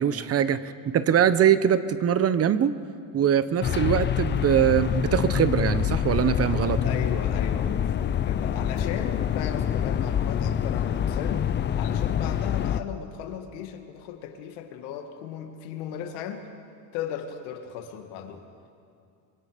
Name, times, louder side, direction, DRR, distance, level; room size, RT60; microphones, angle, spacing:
voice 1, 0.0-2.7 3.1-7.0, right 9 dB, 35° right, 14 dB, 0.9 m, -22 dB
sound 1, 3.6-12.8, left 9 dB, 25° left, 0.5 m, -26 dB
voice 2, 6.8-11.5 11.8-16.5 16.9-18.4, left 8 dB, 85° left, 5 dB, 2.3 m, -36 dB
24.5 x 24.0 x 5.2 m, 2.4 s
cardioid pair, 125°, 44 cm